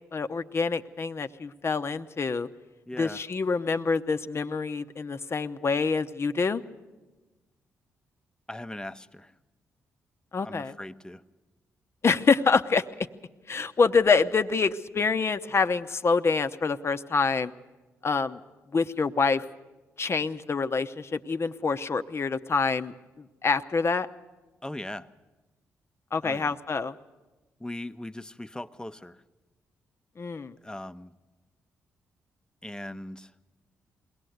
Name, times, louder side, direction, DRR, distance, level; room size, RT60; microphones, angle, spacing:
voice 1, 0.1-2.5 3.0-6.6 10.3-10.7 12.0-13.1 13.5-17.5 18.0-18.4 18.7-19.4 20.0-22.9 23.4-24.1 26.1-26.9 30.2-30.5, left 4 dB, 40° left, 10 dB, 0.9 m, -26 dB
voice 2, 2.9-3.2 8.5-9.3 10.4-11.2 24.6-25.1 26.2-26.5 27.6-29.2 30.6-31.1 32.6-33.3, left 1 dB, 10° left, 12 dB, 0.9 m, -39 dB
22.0 x 17.5 x 8.0 m, 1.2 s
hypercardioid pair, 40°, 7 cm